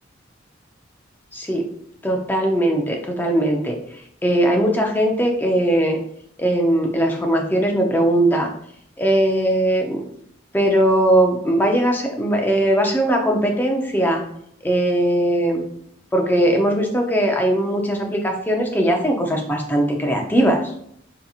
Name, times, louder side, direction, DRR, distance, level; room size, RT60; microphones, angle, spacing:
voice 1, 1.3-1.6 2.0-3.8 4.2-6.0 6.4-8.5 9.0-10.0 10.5-14.2 14.6-15.6 16.1-20.7, right 1 dB, 10° left, 2 dB, 0.4 m, -19 dB
3.8 x 2.9 x 2.4 m, 0.68 s
head